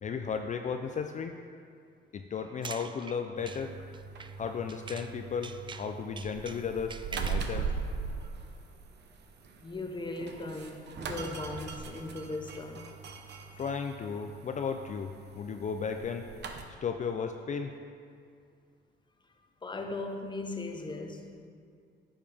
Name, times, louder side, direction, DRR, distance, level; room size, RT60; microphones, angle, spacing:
voice 1, 0.0-1.3 2.1-3.8 4.4-7.7 13.6-16.2 16.8-17.7, left 6 dB, 40° left, 6 dB, 0.4 m, -35 dB
sound 1, 2.4-5.2 5.4-7.5, right 5 dB, 25° right, 0.3 m, -45 dB
sound 2, 3.4-16.6, right 5 dB, 60° right, 0.8 m, -40 dB
voice 2, 9.6-12.9 19.6-21.5, left 2 dB, 25° left, 4 dB, 0.9 m, -38 dB
10.5 x 7.2 x 3.5 m, 2.3 s
cardioid pair, 90°, 20 cm